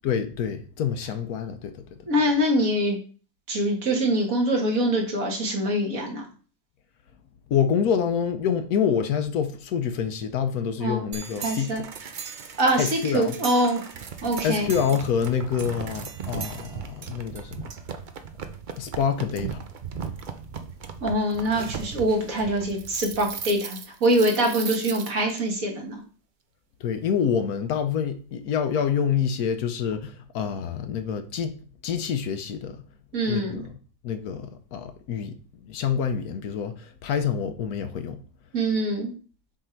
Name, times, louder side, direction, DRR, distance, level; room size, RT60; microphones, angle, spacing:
voice 1, 0.0-2.0 7.5-11.8 12.8-13.3 14.4-17.7 18.8-19.6 26.8-31.6 31.8-32.8 33.3-33.7 34.0-35.4 35.6-38.2, left 7 dB, 70° left, 1.2 m, -27 dB
voice 2, 2.1-3.0 3.5-6.2 10.8-11.0 11.4-11.8 12.6-13.8 14.2-14.7 21.0-26.0 33.1-33.7 38.5-39.1, right 1 dB, 55° right, 2.0 m, -24 dB
sound 1, 11.1-25.4, right 6 dB, 75° right, 0.4 m, -37 dB
7.3 x 3.7 x 4.4 m
omnidirectional pair, 1.7 m